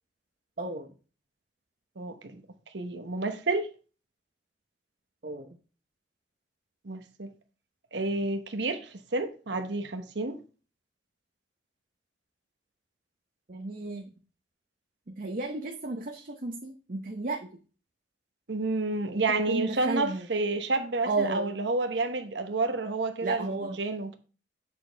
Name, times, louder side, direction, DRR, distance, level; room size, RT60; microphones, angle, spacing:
voice 1, 0.6-0.9 5.2-5.5 13.5-14.1 15.1-17.4 19.1-20.2 21.1-21.5 23.2-23.8, right 2 dB, 50° right, 0.9 m, -33 dB
voice 2, 2.0-2.4 2.7-3.7 6.8-7.3 7.9-10.4 18.5-24.2, right 3 dB, 75° right, 1.0 m, -30 dB
7.6 x 6.2 x 3.4 m
head